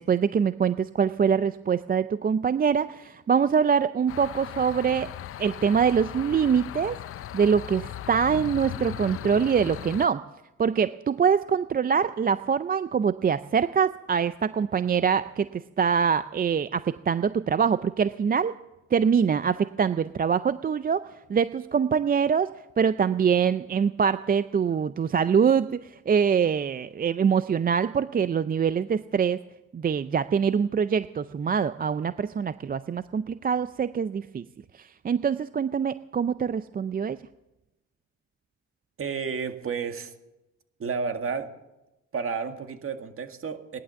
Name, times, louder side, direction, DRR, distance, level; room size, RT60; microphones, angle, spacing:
voice 1, 0.0-5.1 5.4-7.0 7.3-10.2 10.6-18.5 18.9-22.5 22.8-29.4 29.7-34.4 34.7-37.2, right 7 dB, 30° right, 13 dB, 0.5 m, -24 dB
sound 1, 4.1-10.1, left 12 dB, 50° left, 0.5 m, -38 dB
voice 2, 39.0-40.1 40.8-41.5 42.1-43.8, right 5 dB, 45° right, 6 dB, 1.9 m, -31 dB
18.0 x 11.5 x 7.0 m, 0.98 s
cardioid pair, 90°, 30 cm